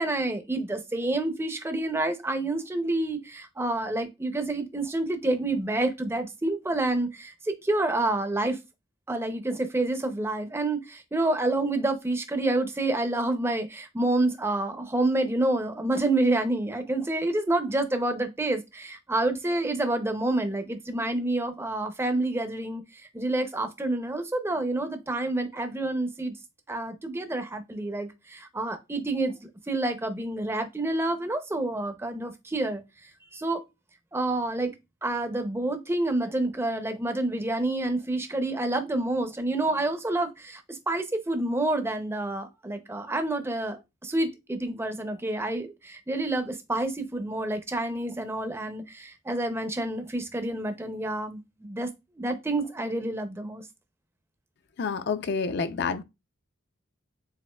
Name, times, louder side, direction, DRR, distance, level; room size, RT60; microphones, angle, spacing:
voice 1, 0.0-8.6 9.1-22.8 23.1-26.3 26.7-29.4 29.7-32.8 33.3-33.6 34.1-34.7 35.0-51.9 52.2-53.6, right 2 dB, 10° right, 0.5 m, -28 dB
voice 2, 54.8-56.0, left 5 dB, 55° left, 0.4 m, -28 dB
7.1 x 2.5 x 2.2 m
head